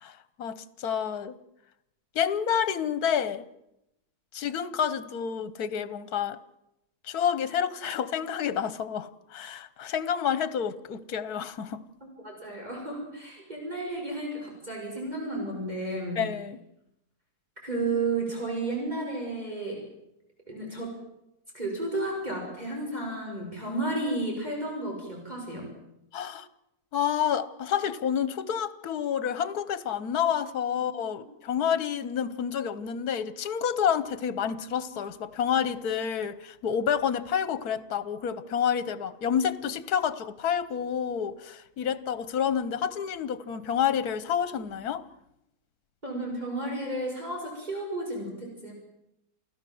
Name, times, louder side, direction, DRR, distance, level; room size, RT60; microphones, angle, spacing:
voice 1, 0.0-1.4 2.1-3.5 4.3-6.4 7.0-11.8 16.2-16.6 26.1-26.5 26.9-45.0, left 8 dB, 75° left, 15 dB, 1.5 m, -29 dB
voice 2, 12.2-16.2 17.6-19.8 20.5-21.0 21.5-25.7 30.7-30.8 46.0-48.7, right 2 dB, 25° right, -2 dB, 6.7 m, -32 dB
29.0 x 16.5 x 7.8 m, 0.85 s
omnidirectional pair, 1.6 m